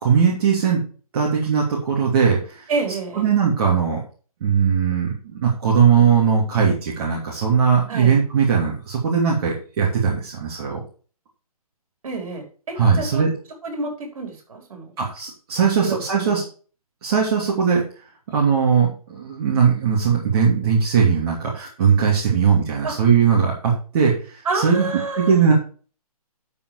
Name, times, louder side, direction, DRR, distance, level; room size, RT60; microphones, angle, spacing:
voice 1, 0.0-0.8 1.1-2.7 3.1-4.0 4.4-10.8 12.7-13.3 15.0-16.4 17.0-17.8 18.3-24.9 25.1-25.5, right 6 dB, 40° right, -4 dB, 3.2 m, -19 dB
voice 2, 2.7-3.3 7.9-8.1 12.0-13.2 13.6-14.8 15.8-16.4 22.3-22.4 22.8-22.9 24.4-25.4, right 3 dB, 60° right, 3 dB, 5.0 m, -28 dB
12.0 x 5.1 x 4.9 m, 0.38 s
hypercardioid pair, 150°, 19 cm